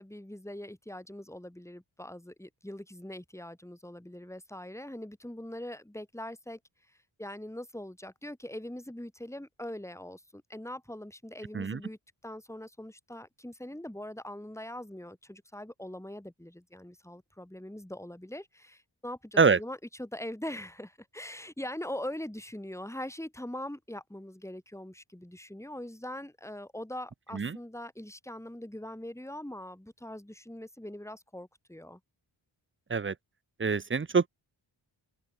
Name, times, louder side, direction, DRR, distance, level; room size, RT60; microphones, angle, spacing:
voice 1, 0.0-6.6 6.9-32.0, left 1 dB, 5° left, 4.8 m, -42 dB
voice 2, 33.6-34.3, right 5 dB, 25° right, 0.6 m, -24 dB
wide cardioid pair, 75°, 48 cm